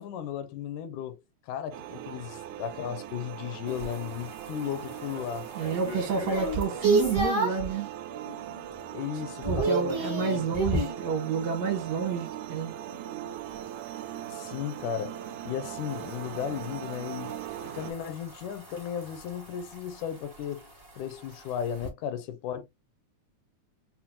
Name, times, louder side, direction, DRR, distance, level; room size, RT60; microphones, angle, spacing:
voice 1, 0.0-5.5 8.9-10.4 14.3-15.2 15.5-17.3 17.7-20.7 21.0-22.6, left 9 dB, 85° left, 2.1 m, -35 dB
sound 1, 1.7-17.9, right 11 dB, 85° right, 2.1 m, -40 dB
sound 2, 3.7-7.7 8.2-8.6 8.9-11.0 13.5-21.9, right 2 dB, 35° right, 0.4 m, -33 dB
voice 2, 5.6-7.9 9.5-12.7, right 6 dB, 65° right, 2.2 m, -29 dB
5.8 x 2.2 x 2.7 m
omnidirectional pair, 3.6 m